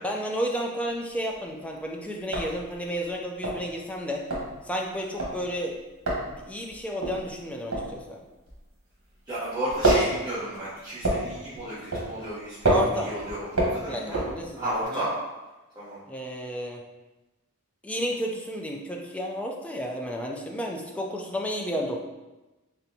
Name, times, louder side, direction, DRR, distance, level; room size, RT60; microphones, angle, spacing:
voice 1, 0.0-4.2 4.6-5.8 6.4-8.2 12.7-13.1 13.9-15.1 16.1-16.8 17.8-22.0, equal, 5° left, 1 dB, 0.4 m, -32 dB
sound 1, 0.9-1.5 1.8-1.9 2.2-9.2 9.5-14.8, right 1 dB, 80° right, 1.2 m, -28 dB
voice 2, 9.3-14.2 14.5-15.1 15.7-16.0, right 1 dB, 20° right, -12 dB, 1.0 m, -33 dB
4.1 x 3.3 x 2.7 m, 1.1 s
head